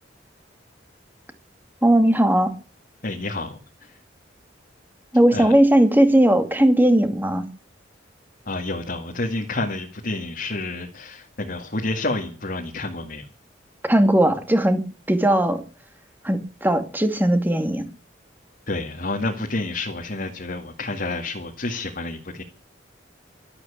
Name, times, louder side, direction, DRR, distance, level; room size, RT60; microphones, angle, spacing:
voice 1, 1.8-2.5 5.1-7.4 13.9-15.6 16.2-17.8, right 1 dB, 10° right, 2.3 m, -18 dB
voice 2, 3.0-3.9 5.3-5.5 8.5-13.3 18.7-22.4, left 2 dB, 50° left, 2.2 m, -29 dB
12.5 x 12.0 x 8.5 m
head